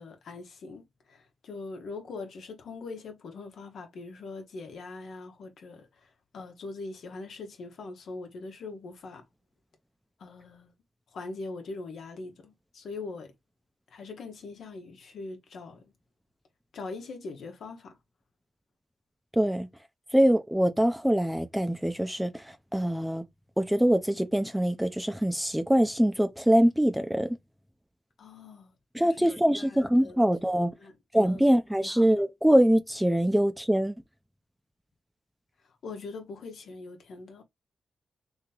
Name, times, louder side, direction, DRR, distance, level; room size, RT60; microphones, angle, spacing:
voice 1, 0.0-9.2 10.2-10.7 11.1-13.3 13.9-15.9 16.7-18.0 28.2-28.7 29.0-30.2 30.8-30.9 31.3-31.4 31.8-32.1 35.8-37.4, left 3 dB, 75° left, 1.1 m, -42 dB
voice 2, 19.3-19.7 20.1-23.2 23.6-27.3 28.9-30.7 31.1-34.0, equal, 5° right, 0.6 m, -24 dB
3.0 x 2.8 x 3.7 m
cardioid pair, 60°, 0 cm